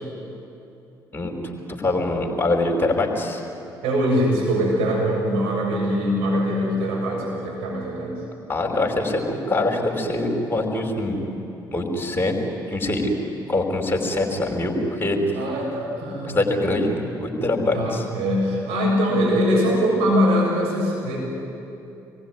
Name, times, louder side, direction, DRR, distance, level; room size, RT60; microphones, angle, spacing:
voice 1, 1.8-3.4 8.5-11.2 11.7-12.3 12.7-13.1 13.5-15.2 16.2-18.0, left 2 dB, 20° left, 2 dB, 5.3 m, -23 dB
voice 2, 3.8-8.2 15.3-16.4 17.7-21.2, equal, 65° right, -4 dB, 7.2 m, -22 dB
28.5 x 21.5 x 9.7 m, 2.8 s
figure-of-eight pair, 45°, 11 cm